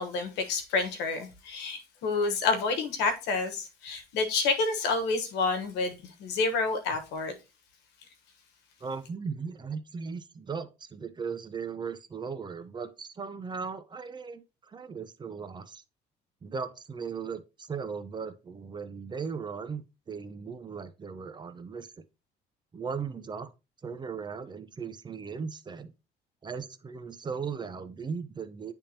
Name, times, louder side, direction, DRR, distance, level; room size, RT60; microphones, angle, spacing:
voice 1, 0.0-7.3, left 4 dB, 85° left, 1.2 m, -29 dB
voice 2, 8.8-15.8 16.4-21.9 22.7-23.5 23.8-25.9 26.4-28.7, right 5 dB, 25° right, 0.6 m, -37 dB
10.0 x 3.5 x 2.8 m
cardioid pair, 110°, 17 cm